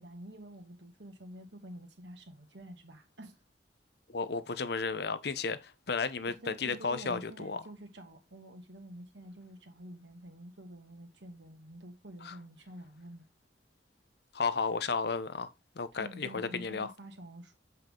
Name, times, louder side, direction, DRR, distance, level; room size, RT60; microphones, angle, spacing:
voice 1, 0.0-3.3 6.3-13.3 15.9-17.6, right 1 dB, 85° right, 2.1 m, -48 dB
voice 2, 4.1-7.6 12.2-12.4 14.3-16.9, left 4 dB, 65° left, 0.8 m, -33 dB
7.6 x 5.5 x 3.8 m
head